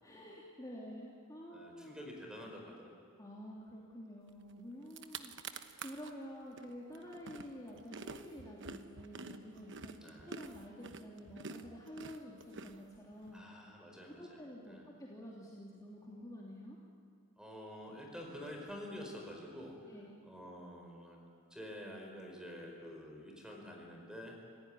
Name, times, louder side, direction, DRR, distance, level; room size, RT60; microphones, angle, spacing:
voice 1, 0.0-2.0 3.2-13.5 14.2-16.8 19.9-20.1, equal, 15° left, -4 dB, 3.0 m, -49 dB
voice 2, 1.5-2.9 10.0-10.3 13.3-14.4 14.7-14.8 17.4-19.8 20.2-21.2 21.5-24.4, equal, 5° right, 0 dB, 4.9 m, -48 dB
sound 1, 4.5-4.6 4.8-6.1 6.6-13.3, right 4 dB, 55° right, 1.1 m, -48 dB
26.5 x 16.0 x 10.0 m, 2.4 s
head